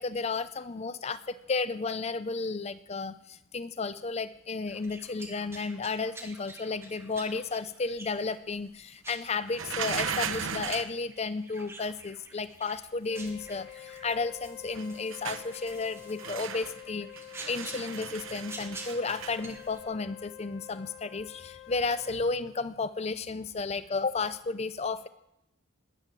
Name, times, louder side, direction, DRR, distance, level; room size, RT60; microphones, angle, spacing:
voice 1, 0.0-17.1 17.5-25.1, left 4 dB, 30° left, 14 dB, 0.5 m, -33 dB
sound 1, 4.7-19.8, right 2 dB, 15° right, 1.7 m, -49 dB
sound 2, 9.5-11.0 14.7-15.5 16.2-16.8 17.2-19.4 21.7-22.0, right 7 dB, 80° right, 1.0 m, -36 dB
Wind instrument woodwind instrument, 13.0-22.2, left 12 dB, 60° left, 3.6 m, -48 dB
20.5 x 8.6 x 7.5 m, 0.84 s
head